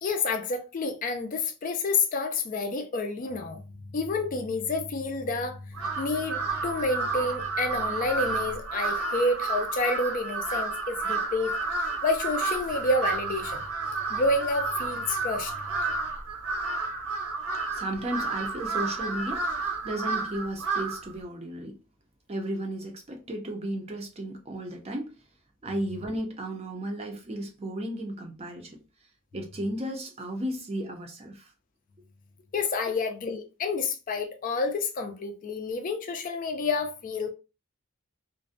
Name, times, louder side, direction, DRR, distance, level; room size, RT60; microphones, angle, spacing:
voice 1, 0.0-3.6 3.9-11.5 12.0-13.6 14.1-15.6 32.5-37.3, left 3 dB, 40° left, 0.3 m, -29 dB
Crow, 5.7-21.1, right 3 dB, 75° right, 0.8 m, -31 dB
voice 2, 17.7-21.8 22.3-25.1 25.6-28.8 29.3-31.5, right 1 dB, 30° right, 0.4 m, -34 dB
2.5 x 2.0 x 2.5 m
head